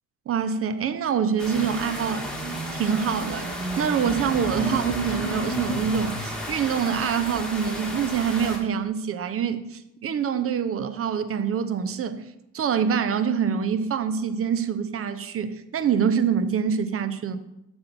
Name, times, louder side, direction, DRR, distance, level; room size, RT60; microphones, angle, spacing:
voice 1, 0.3-2.3 2.7-12.2 12.5-17.4, right 7 dB, 50° right, 0.6 m, -25 dB
sound 1, 1.4-8.6, right 1 dB, 5° left, 1.7 m, -31 dB
6.8 x 4.3 x 5.3 m
cardioid pair, 90°, 30 cm